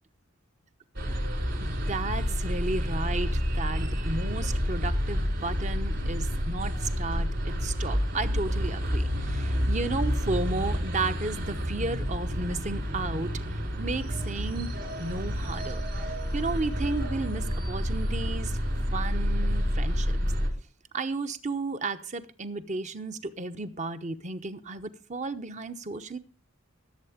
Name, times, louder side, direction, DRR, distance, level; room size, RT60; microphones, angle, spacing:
sound 1, 1.0-20.5, equal, 55° right, 4.7 m, -29 dB
voice 1, 1.6-15.8 16.3-18.6 18.9-20.1 20.9-26.2, right 3 dB, 35° right, 0.9 m, -33 dB
16.0 x 8.0 x 5.1 m
head